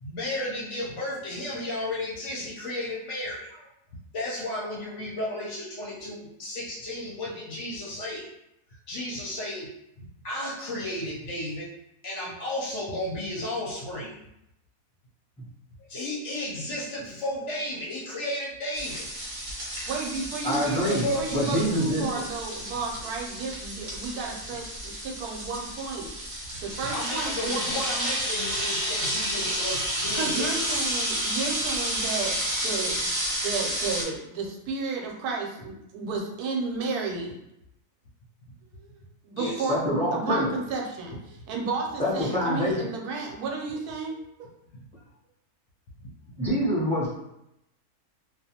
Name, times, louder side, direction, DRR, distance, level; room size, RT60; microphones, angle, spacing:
voice 1, 0.0-3.7 4.1-8.3 8.9-9.7 10.0-11.7 12.0-14.1 15.9-19.1 20.8-21.5 26.8-30.5 31.8-31.9 39.4-39.7 42.0-42.1 44.7-44.8 46.0-46.1, left 1 dB, 60° left, -5 dB, 0.8 m, -33 dB
sound 1, 18.7-34.0, equal, 45° right, 0.7 m, -31 dB
voice 2, 19.9-27.6 30.1-32.3 32.6-33.1 33.4-37.4 38.8-39.0 39.2-44.3, right 4 dB, 85° right, 0 dB, 1.1 m, -32 dB
voice 3, 20.4-21.0 21.3-22.1 39.7-40.5 42.0-42.8 46.4-47.1, equal, 5° left, -9 dB, 0.7 m, -25 dB
2.5 x 2.3 x 2.8 m, 0.82 s
omnidirectional pair, 1.6 m